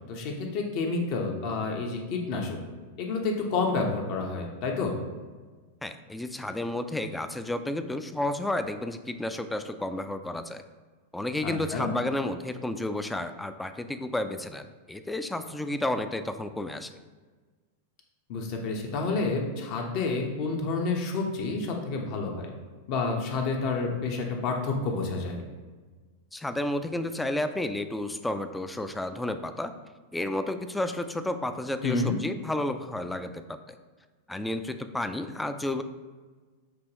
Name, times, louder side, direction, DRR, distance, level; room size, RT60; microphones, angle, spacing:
voice 1, 0.1-2.6 3.0-5.0 11.4-11.9 18.3-22.5 22.9-25.4 31.8-32.2, left 3 dB, 50° left, 1 dB, 0.9 m, -29 dB
voice 2, 5.8-10.6 11.1-16.9 26.3-29.7 30.1-33.8 34.3-35.8, left 1 dB, 5° left, 9 dB, 0.3 m, -31 dB
6.1 x 2.9 x 2.9 m, 1.4 s
hypercardioid pair, 100°, 0 cm